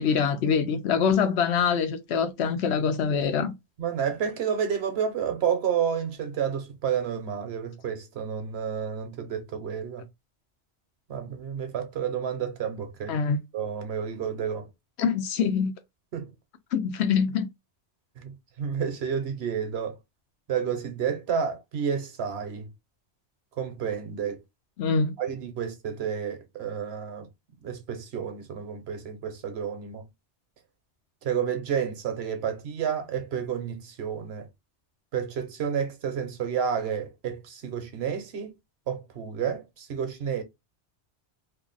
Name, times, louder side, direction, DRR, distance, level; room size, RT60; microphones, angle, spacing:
voice 1, 0.0-3.5 13.1-13.4 15.0-15.7 16.7-17.5 24.8-25.1, left 6 dB, 70° left, 0.9 m, -24 dB
voice 2, 3.8-10.1 11.1-13.2 13.5-14.7 16.1-16.3 18.2-20.0 20.5-22.7 23.6-24.4 25.2-27.3 27.6-30.1 31.2-34.5 35.1-38.5 38.9-40.4, right 7 dB, 65° right, 1.0 m, -30 dB
2.7 x 2.4 x 3.8 m
omnidirectional pair, 1.2 m